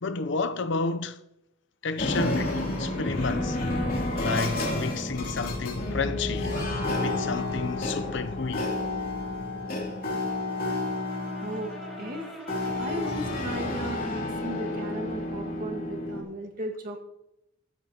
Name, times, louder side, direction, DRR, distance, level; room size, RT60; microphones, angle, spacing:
voice 1, 0.0-1.2 1.8-3.6 4.1-6.5 7.0-8.7, left 4 dB, 65° left, 0.6 m, -31 dB
sound 1, 2.0-16.2, left 2 dB, 45° left, 3.0 m, -30 dB
Brass instrument, 9.9-14.1, right 1 dB, ahead, 2.9 m, -46 dB
voice 2, 11.4-12.2 12.8-17.0, right 1 dB, 45° right, 1.9 m, -36 dB
15.0 x 12.5 x 2.9 m
head